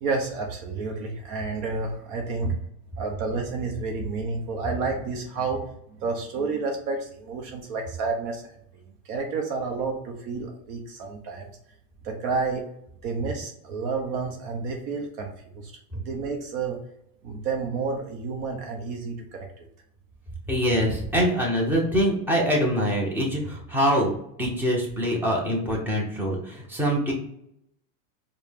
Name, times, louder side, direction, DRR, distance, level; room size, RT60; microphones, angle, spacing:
voice 1, 0.0-2.7 3.0-8.6 9.0-11.5 12.0-12.6 13.0-16.8 17.2-19.7, right 4 dB, 50° right, 2 dB, 0.9 m, -30 dB
voice 2, 20.5-24.1 24.4-27.1, equal, 5° right, -3 dB, 0.8 m, -24 dB
4.6 x 2.3 x 3.5 m, 0.73 s
supercardioid pair, 145°, 48 cm